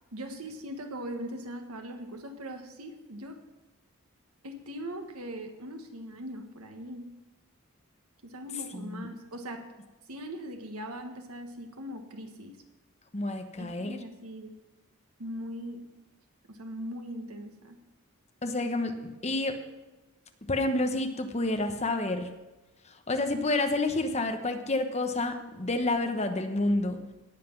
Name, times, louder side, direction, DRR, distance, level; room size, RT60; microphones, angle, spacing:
voice 1, 0.1-3.4 4.4-7.1 8.2-9.7 10.1-12.6 13.6-14.5 15.2-15.8 16.5-17.8, equal, 85° right, 5 dB, 1.5 m, -40 dB
voice 2, 8.7-9.1 13.1-14.0 18.4-19.6 20.5-22.3 22.8-27.0, left 2 dB, 30° left, 6 dB, 1.0 m, -29 dB
17.5 x 5.9 x 6.1 m, 1.1 s
head